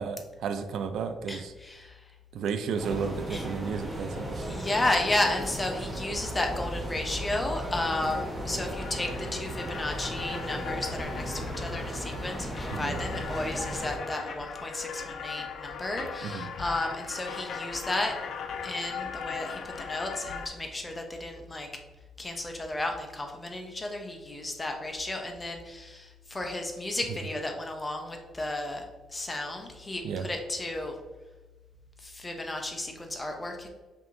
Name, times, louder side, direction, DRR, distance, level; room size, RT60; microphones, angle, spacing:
voice 1, 0.0-1.5 2.3-4.6 12.7-13.1 16.2-16.5 30.0-30.3, right 6 dB, 75° right, 8 dB, 0.3 m, -33 dB
voice 2, 1.3-2.0 3.3-3.4 4.4-18.1 18.6-21.7 22.2-30.9 32.0-33.7, left 2 dB, 20° left, 3 dB, 0.7 m, -33 dB
sound 1, 2.8-14.0, equal, 15° right, 1.1 m, -36 dB
sound 2, 8.7-20.5, left 6 dB, 70° left, 0.4 m, -39 dB
5.3 x 2.9 x 2.6 m, 1.2 s
cardioid pair, 90°, 0 cm